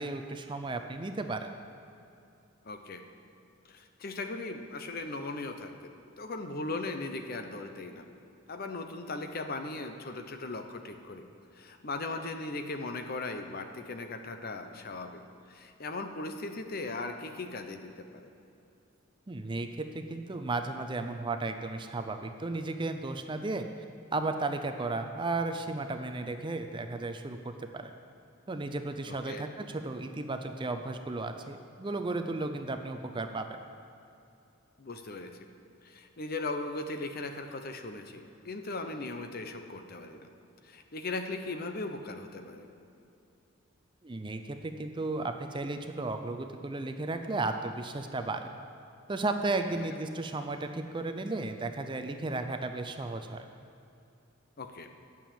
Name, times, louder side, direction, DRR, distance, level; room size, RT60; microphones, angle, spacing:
voice 1, 0.0-1.5 19.3-23.7 24.1-27.9 28.5-33.5 44.0-48.4 49.1-53.5, right 2 dB, 25° right, 7 dB, 0.5 m, -34 dB
voice 2, 2.6-3.0 3.7-5.9 6.2-8.1 8.5-11.3 11.5-15.2 15.5-18.3 29.1-29.4 34.8-35.3 35.8-40.3 40.6-42.7 49.7-50.0 54.6-54.9, left 2 dB, 45° left, 6 dB, 0.8 m, -38 dB
8.8 x 7.2 x 8.8 m, 2.7 s
head